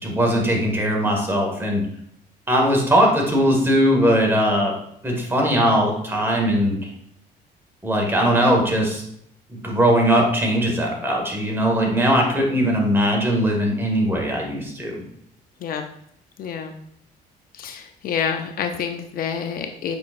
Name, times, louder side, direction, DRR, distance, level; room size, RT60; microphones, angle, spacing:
voice 1, 0.0-1.8 2.5-4.7 5.0-6.9 7.8-9.0 9.5-15.0, equal, 15° right, 0 dB, 1.6 m, -20 dB
voice 2, 16.4-16.8 17.5-20.0, left 7 dB, 60° left, 6 dB, 0.6 m, -28 dB
7.7 x 5.2 x 2.5 m, 0.72 s
cardioid pair, 110°, 17 cm